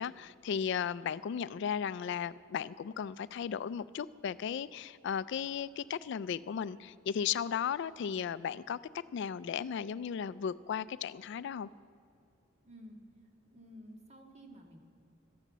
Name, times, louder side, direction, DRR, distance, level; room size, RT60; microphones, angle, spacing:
voice 1, 0.0-8.8 9.1-11.7, left 7 dB, 65° left, 18 dB, 0.3 m, -35 dB
voice 2, 12.6-13.0 13.5-14.8, equal, 35° right, 3 dB, 1.7 m, -52 dB
13.5 x 10.5 x 7.3 m, 2.5 s
head